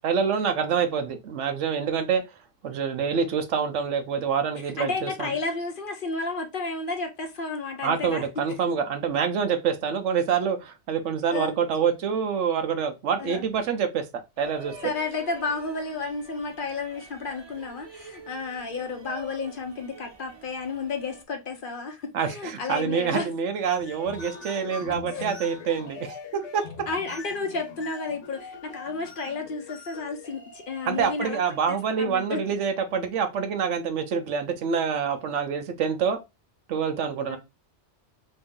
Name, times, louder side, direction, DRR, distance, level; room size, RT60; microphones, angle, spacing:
voice 1, 0.0-2.2 2.6-5.3 7.8-14.0 14.4-14.7 22.1-26.6 30.8-36.2 36.7-37.4, right 6 dB, 85° right, 1.0 m, -26 dB
voice 2, 4.8-8.2 10.4-10.6 11.3-11.5 13.2-13.4 14.8-23.3 25.1-25.3 26.9-31.4 32.0-32.4 37.3-37.4, left 4 dB, 55° left, 0.8 m, -32 dB
sound 1, 14.4-21.2, right 3 dB, 45° right, 0.3 m, -46 dB
sound 2, 23.7-32.0, left 5 dB, 75° left, 1.1 m, -43 dB
3.0 x 2.7 x 3.5 m
omnidirectional pair, 1.2 m